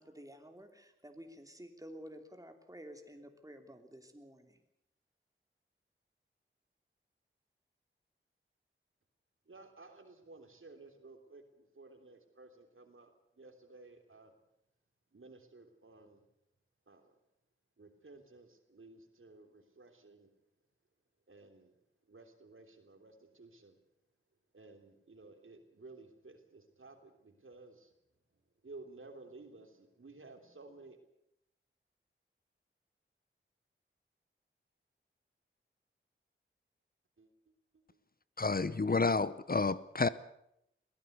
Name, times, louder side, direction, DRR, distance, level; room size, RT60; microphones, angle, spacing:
voice 1, 0.0-4.6, equal, 15° right, 3.1 m, -51 dB
voice 2, 9.5-14.3 15.1-16.2 16.9-17.1 17.8-20.3 21.3-21.7 22.1-23.8 24.5-27.9 28.6-31.0 37.2-37.3, right 3 dB, 70° right, 3.3 m, -55 dB
voice 3, 38.4-40.1, left 3 dB, 45° left, 0.8 m, -30 dB
22.0 x 16.0 x 8.1 m
wide cardioid pair, 60°, 21 cm